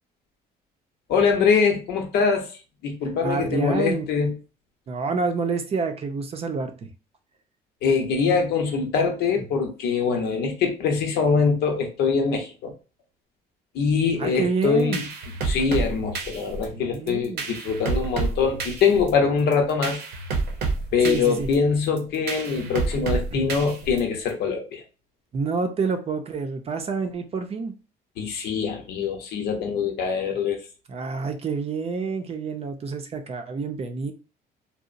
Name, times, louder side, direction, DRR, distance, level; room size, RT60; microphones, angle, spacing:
voice 1, 1.1-2.5 2.8-4.3 7.8-12.7 13.7-15.0 15.4-20.0 20.9-24.8 28.2-30.6, left 5 dB, 75° left, 0.8 m, -23 dB
voice 2, 3.2-4.1 4.9-6.9 14.2-15.0 16.7-17.5 21.0-21.5 23.3-23.4 25.3-27.7 30.9-34.1, right 4 dB, 35° right, 0.5 m, -28 dB
sound 1, 14.6-24.3, right 4 dB, 75° right, 0.7 m, -30 dB
2.8 x 2.0 x 2.5 m
cardioid pair, 110°, 17 cm